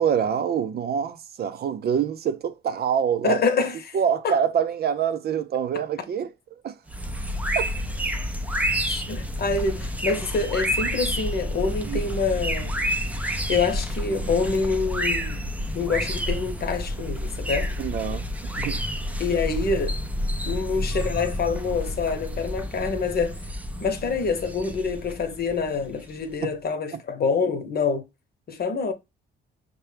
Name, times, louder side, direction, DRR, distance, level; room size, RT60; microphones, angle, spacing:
voice 1, 0.0-3.4 3.9-6.3 6.6-6.7 7.5-7.7 11.9-12.0 17.8-18.3 18.6-18.8 26.4-26.5 26.9-27.0, right 8 dB, 55° right, 0.5 m, -25 dB
voice 2, 3.2-4.0 4.2-4.4 8.8-12.7 13.5-15.5 15.7-17.7 19.2-19.9 20.5-23.4 23.8-28.1 28.5-28.9, left 4 dB, 50° left, 0.9 m, -26 dB
sound 1, 6.9-26.3, equal, 5° right, 0.5 m, -29 dB
5.6 x 2.2 x 3.3 m
cardioid pair, 90°, 20 cm